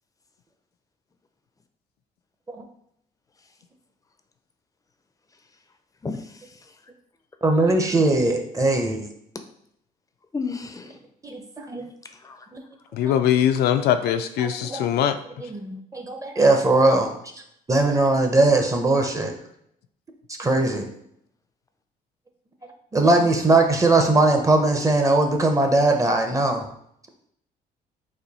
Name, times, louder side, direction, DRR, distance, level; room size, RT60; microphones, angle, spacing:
voice 1, 6.0-6.5 10.3-11.0 12.2-12.5, left 4 dB, 20° left, 7 dB, 0.5 m, -32 dB
voice 2, 7.4-9.1 11.2-11.8 12.5-12.6 13.0-13.1 14.4-14.8 15.4-17.1 17.7-19.3 20.3-20.9 22.9-26.7, right 2 dB, 20° right, 4 dB, 0.7 m, -20 dB
voice 3, 12.9-15.2, left 10 dB, 80° left, 9 dB, 0.4 m, -21 dB
4.3 x 2.6 x 4.1 m, 0.72 s
cardioid pair, 105°, 16 cm